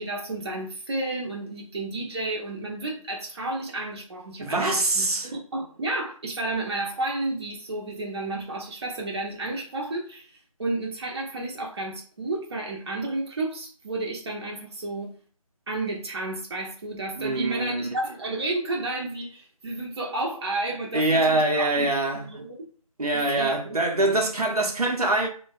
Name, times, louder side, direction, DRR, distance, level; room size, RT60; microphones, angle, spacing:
voice 1, 0.0-10.3 10.6-15.1 15.7-22.6 23.1-23.8, right 2 dB, 45° right, 0.6 m, -31 dB
voice 2, 4.4-5.3 17.2-17.9 20.9-22.4 23.0-25.3, right 2 dB, 85° right, 0.8 m, -24 dB
2.5 x 2.1 x 2.3 m
figure-of-eight pair, 160°, 19 cm